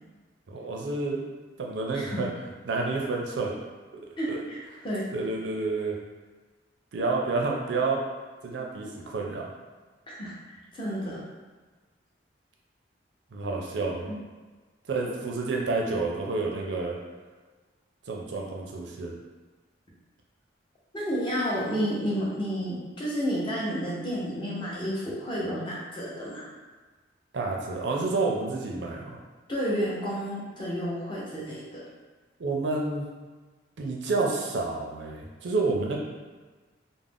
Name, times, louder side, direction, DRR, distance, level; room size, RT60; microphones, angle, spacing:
voice 1, 0.5-1.2 1.6-2.3 2.6-3.5 4.3-4.4 5.1-6.0 6.9-8.0 8.4-9.5 13.3-14.1 14.9-17.0 18.1-19.1 27.3-29.2 32.4-33.1 33.8-36.0, right 3 dB, 70° right, -1 dB, 0.4 m, -29 dB
voice 2, 1.9-2.2 4.2-5.1 10.1-10.3 10.7-11.2 14.1-14.2 20.9-26.5 29.5-31.8, equal, 25° left, -6 dB, 0.6 m, -31 dB
2.4 x 2.0 x 3.4 m, 1.3 s
head